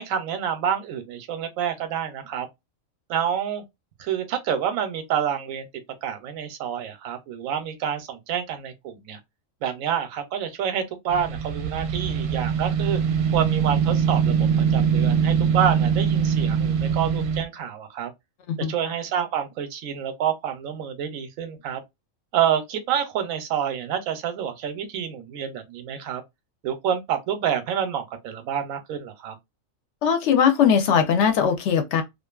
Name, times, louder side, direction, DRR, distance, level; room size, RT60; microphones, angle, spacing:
voice 1, 0.0-2.5 3.1-3.6 4.0-5.7 6.0-9.2 9.6-13.0 13.3-18.1 18.7-21.8 22.3-26.2 26.6-29.3, right 8 dB, 90° right, 1.0 m, -28 dB
sound 1, 11.1-17.4, right 7 dB, 65° right, 0.7 m, -22 dB
voice 2, 30.0-32.0, left 7 dB, 65° left, 0.9 m, -20 dB
2.5 x 2.5 x 2.2 m
omnidirectional pair, 1.4 m